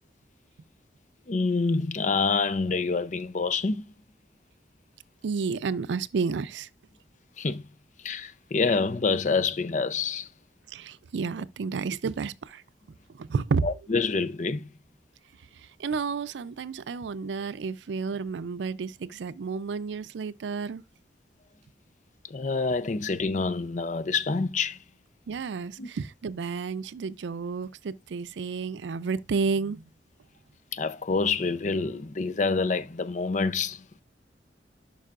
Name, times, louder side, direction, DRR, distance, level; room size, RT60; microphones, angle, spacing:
voice 1, 1.3-3.8 7.4-7.6 8.0-10.3 13.6-14.6 22.3-24.8 25.8-25.9 30.7-33.8, left 4 dB, 45° left, 0.5 m, -27 dB
voice 2, 5.2-6.7 10.7-12.6 13.2-13.7 15.8-20.8 25.3-29.8, right 5 dB, 90° right, 0.4 m, -31 dB
11.0 x 5.5 x 2.4 m
head